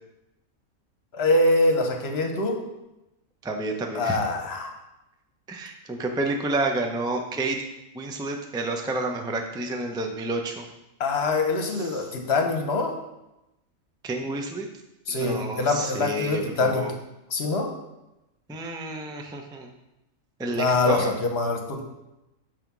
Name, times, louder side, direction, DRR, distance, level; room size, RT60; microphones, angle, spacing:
voice 1, 1.1-2.6 3.9-4.7 11.0-12.9 15.1-16.9 17.3-17.7 20.5-21.8, left 2 dB, 50° left, 3 dB, 1.3 m, -24 dB
voice 2, 3.4-4.2 5.5-7.6 7.9-10.7 11.8-12.0 14.0-14.7 15.1-16.9 18.5-19.7 20.4-21.0, right 2 dB, 5° right, 3 dB, 0.4 m, -29 dB
9.1 x 3.5 x 6.0 m, 0.94 s
omnidirectional pair, 1.4 m